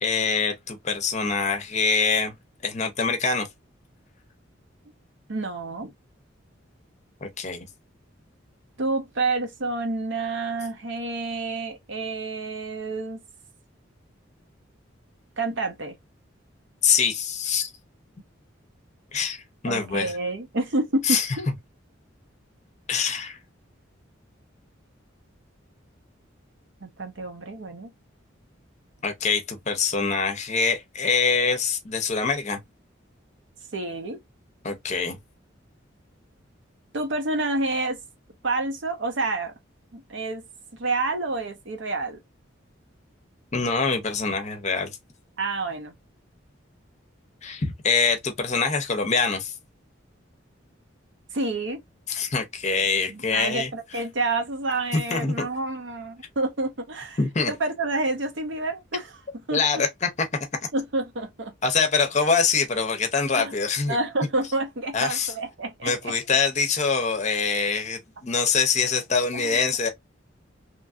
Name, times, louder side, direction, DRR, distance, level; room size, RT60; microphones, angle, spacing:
voice 1, 0.0-2.3 2.6-3.5 7.2-7.7 16.8-17.7 19.1-20.1 21.0-21.3 22.9-23.4 29.0-32.6 34.6-35.2 43.5-44.9 47.4-49.5 52.1-53.7 54.9-55.5 57.2-57.5 59.5-60.1 61.6-64.0 64.9-65.3 65.8-69.9, left 5 dB, 35° left, 0.6 m, -24 dB
voice 2, 5.3-5.9 8.8-13.2 15.4-16.0 19.7-21.5 26.8-27.9 33.7-34.2 36.9-38.0 38.4-39.5 39.9-40.4 40.7-42.2 45.4-45.9 51.3-51.8 53.1-57.2 57.5-59.8 60.7-61.5 63.3-63.5 63.9-66.1 69.3-69.6, right 2 dB, 65° right, 0.8 m, -29 dB
2.9 x 2.6 x 2.4 m
head